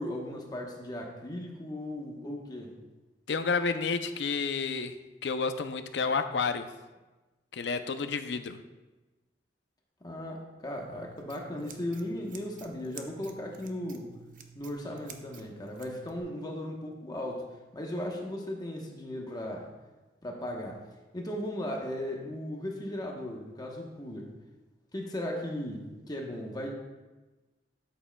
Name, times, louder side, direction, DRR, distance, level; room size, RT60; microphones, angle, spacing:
voice 1, 0.0-2.8 10.0-14.1 14.5-17.5 17.7-19.7 20.2-20.8 21.1-24.3 24.9-26.7, left 1 dB, 25° left, 0 dB, 1.0 m, -37 dB
voice 2, 3.3-5.0 5.2-6.7 7.5-8.6, left 5 dB, 70° left, 9 dB, 0.5 m, -30 dB
Scissors, 10.8-16.2, right 7 dB, 50° right, 0.7 m, -51 dB
13.0 x 7.3 x 2.3 m, 1.2 s
head